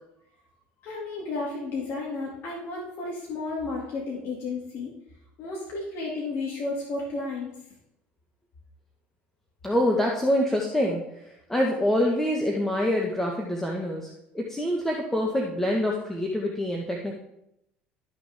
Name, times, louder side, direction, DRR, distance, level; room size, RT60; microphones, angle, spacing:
voice 1, 0.8-5.0 5.4-7.5, left 3 dB, 50° left, -3 dB, 2.6 m, -32 dB
voice 2, 9.6-17.1, left 1 dB, 5° left, -1 dB, 1.6 m, -26 dB
12.5 x 6.2 x 3.7 m, 0.82 s
hypercardioid pair, 75°, 5 cm